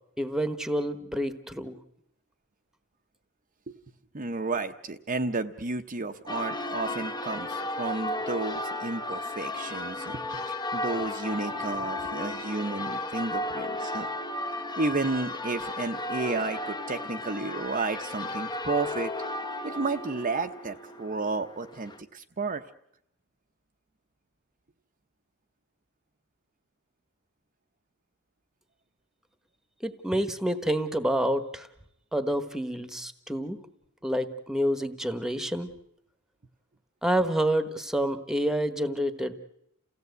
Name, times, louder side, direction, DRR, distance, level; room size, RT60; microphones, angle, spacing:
voice 1, 0.2-1.8 29.8-31.7 32.1-33.6 34.0-35.7 37.0-39.3, equal, ahead, 10 dB, 1.2 m, -28 dB
voice 2, 4.1-10.2 10.5-14.1 14.8-19.1 19.6-22.6, right 3 dB, 40° right, 6 dB, 0.8 m, -32 dB
Church bell, 6.3-22.0, left 1 dB, 20° left, 0.9 m, -34 dB
29.0 x 16.5 x 8.0 m, 0.78 s
head